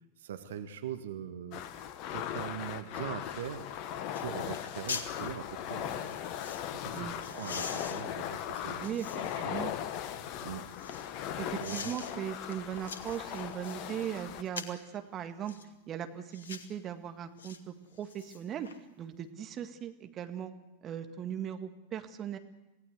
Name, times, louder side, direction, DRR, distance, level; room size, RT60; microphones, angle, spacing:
voice 1, 0.2-1.6 2.1-3.7 4.2-6.2 6.8-7.1 7.3-9.1 9.4-9.7 10.4-10.6 11.6-11.9, right 9 dB, 60° right, 8 dB, 1.6 m, -41 dB
sound 1, 1.5-14.4, left 10 dB, 40° left, 1.4 m, -38 dB
sound 2, 4.1-4.3 4.5-5.1 5.9-6.7 7.2-9.5 10.0-11.1 11.6-12.1 12.5-13.8 14.5-14.9 15.5-15.7 16.3-16.7 17.4-17.6 17.9-18.8 19.1-19.2, left 5 dB, 65° left, 1.8 m, -43 dB
voice 2, 9.4-9.7 11.4-15.5 15.9-18.7 19.0-20.5 20.8-22.4, right 9 dB, 30° right, 7 dB, 1.9 m, -38 dB
27.0 x 17.5 x 8.3 m, 0.92 s
figure-of-eight pair, 90°, 0 cm